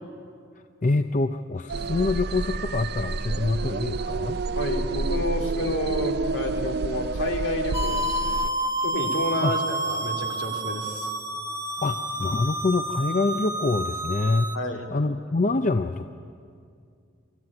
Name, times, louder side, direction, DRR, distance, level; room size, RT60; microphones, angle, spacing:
voice 1, 0.8-4.4 9.4-9.6 11.8-14.5 14.9-16.1, left 3 dB, 40° left, 8 dB, 0.5 m, -25 dB
sound 1, 1.7-8.5, right 3 dB, 50° right, 0.5 m, -29 dB
voice 2, 4.6-8.4 8.8-11.1 14.5-14.8, left 1 dB, 65° left, 2 dB, 2.5 m, -30 dB
sound 2, 7.7-14.6, right 1 dB, 15° right, 1.2 m, -29 dB
24.0 x 14.0 x 9.6 m, 2.4 s
head